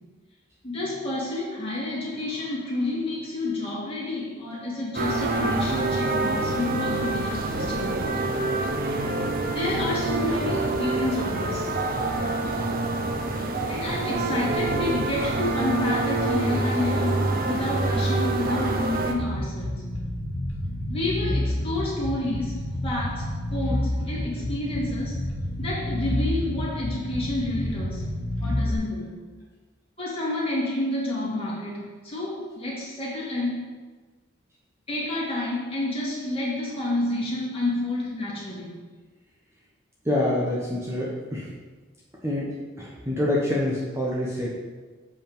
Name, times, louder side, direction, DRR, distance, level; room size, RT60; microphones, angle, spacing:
voice 1, 0.6-8.0 9.5-11.7 13.7-19.7 20.9-25.2 25.6-28.1 28.4-29.2 30.0-33.7 34.9-38.7, left 1 dB, 30° left, -6 dB, 2.5 m, -29 dB
sound 1, 4.9-19.1, right 2 dB, 45° right, 0.7 m, -26 dB
Bass guitar, 19.2-28.8, left 1 dB, 90° left, 1.4 m, -29 dB
voice 2, 40.0-41.5 42.2-42.5 42.8-44.5, left 1 dB, 15° right, -6 dB, 1.1 m, -26 dB
7.2 x 5.4 x 5.2 m, 1.3 s
head